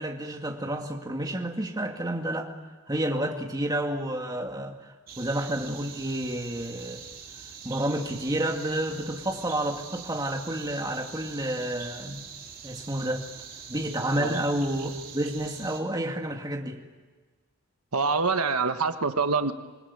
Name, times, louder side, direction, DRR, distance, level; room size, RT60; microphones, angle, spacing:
voice 1, 0.0-2.5 2.9-7.0 7.6-12.3 12.6-13.2 13.7-16.8, right 1 dB, 15° right, 2 dB, 2.3 m, -30 dB
sound 1, 5.1-15.8, right 6 dB, 40° right, 3.6 m, -44 dB
voice 2, 17.9-19.5, right 4 dB, 80° right, 8 dB, 1.4 m, -25 dB
27.5 x 20.0 x 9.8 m, 1.3 s
head